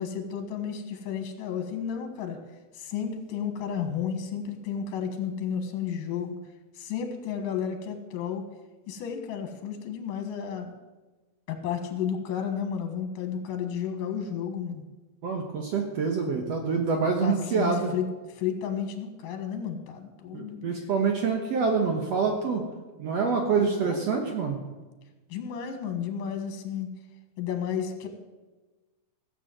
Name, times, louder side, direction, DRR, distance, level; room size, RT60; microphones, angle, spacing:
voice 1, 0.0-2.4 2.7-6.4 6.8-8.5 8.9-10.7 11.5-14.8 17.2-18.0 18.3-20.8 23.6-24.0 25.3-26.9 27.4-28.1, left 8 dB, 80° left, 6 dB, 3.1 m, -32 dB
voice 2, 15.2-17.9 20.3-22.6 23.0-24.6, right 5 dB, 60° right, 3 dB, 2.0 m, -26 dB
16.5 x 7.6 x 7.8 m, 1.2 s
omnidirectional pair, 3.7 m